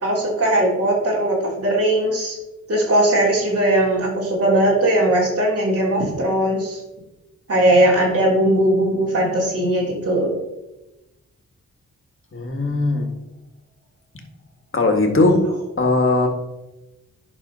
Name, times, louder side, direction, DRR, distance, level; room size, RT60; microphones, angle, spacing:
voice 1, 0.0-2.4 2.7-6.8 7.5-10.3, right 1 dB, 45° right, -5 dB, 3.5 m, -19 dB
voice 2, 12.3-13.1 14.7-15.5 15.8-16.3, left 2 dB, 40° left, 3 dB, 1.9 m, -18 dB
10.5 x 4.3 x 5.6 m, 1.0 s
cardioid pair, 70°, 32 cm